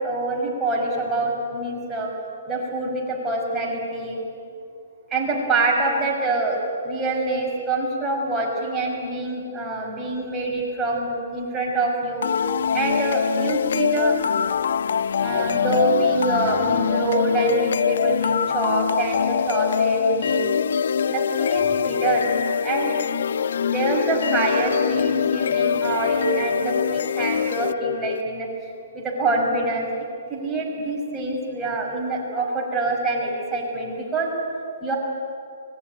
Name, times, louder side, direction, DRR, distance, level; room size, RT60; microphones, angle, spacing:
voice 1, 0.0-2.1 2.5-4.2 5.1-12.3 12.7-14.2 15.2-20.5 21.1-22.3 22.6-23.0 23.7-28.5 28.9-29.9 30.3-34.3 34.8-35.0, right 2 dB, 10° right, -3 dB, 5.9 m, -25 dB
sound 1, 12.2-28.2, left 7 dB, 70° left, 0.5 m, -23 dB
25.0 x 21.0 x 9.5 m, 2.5 s
hypercardioid pair, 140°, 0 cm